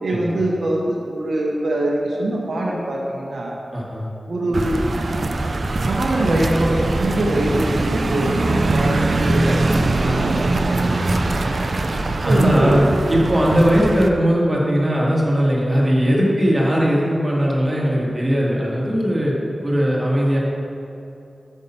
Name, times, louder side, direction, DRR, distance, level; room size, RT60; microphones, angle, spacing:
voice 1, 0.0-3.6 4.3-4.8 5.8-10.5 12.2-12.8, right 1 dB, 80° right, -2 dB, 0.8 m, -23 dB
voice 2, 3.7-4.1 10.7-11.4 12.2-19.3 19.6-20.4, equal, 25° right, -4 dB, 1.8 m, -19 dB
sound 1, 4.5-14.1, right 2 dB, 65° right, 0.4 m, -22 dB
sound 2, 8.5-19.8, left 3 dB, 45° left, 1.2 m, -43 dB
6.3 x 5.5 x 5.6 m, 2.7 s
cardioid pair, 50°, 0 cm